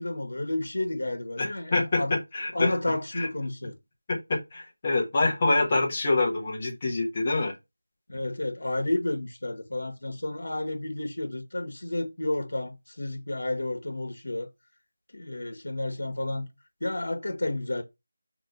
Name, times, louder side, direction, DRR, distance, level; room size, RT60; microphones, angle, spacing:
voice 1, 0.0-2.2 2.5-3.8 8.1-14.5 15.1-16.5 16.8-17.8, left 2 dB, 65° left, 1.9 m, -31 dB
voice 2, 1.4-2.8 3.1-3.3 4.1-7.5, left 2 dB, 20° left, 1.4 m, -26 dB
5.9 x 3.1 x 5.6 m
figure-of-eight pair, 180°, 0 cm